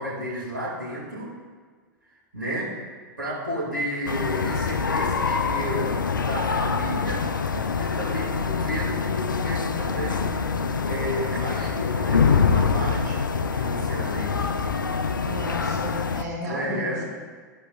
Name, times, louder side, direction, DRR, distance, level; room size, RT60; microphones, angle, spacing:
voice 1, 0.0-1.3 2.3-2.9 3.2-7.3 7.7-10.3 10.8-13.2 13.5-14.5 16.4-17.1, equal, 85° right, -7 dB, 2.4 m, -32 dB
sound 1, 4.1-16.2, left 5 dB, 85° left, 0.5 m, -25 dB
voice 2, 15.2-17.1, equal, 30° right, -7 dB, 2.4 m, -34 dB
14.0 x 5.6 x 2.5 m, 1.5 s
figure-of-eight pair, 95°, 10 cm